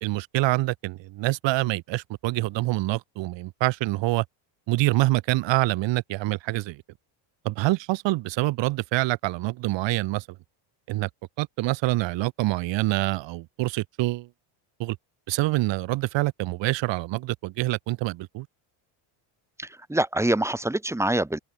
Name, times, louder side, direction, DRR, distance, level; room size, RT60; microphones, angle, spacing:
voice 1, 0.0-4.2 4.7-6.8 7.5-10.3 10.9-11.1 11.4-14.3 14.8-15.0 15.3-18.5, right 19 dB, 60° right, 1.8 m, -26 dB
voice 2, 19.6-21.4, right 1 dB, 5° right, 4.5 m, -25 dB
open air
cardioid pair, 140°, 49 cm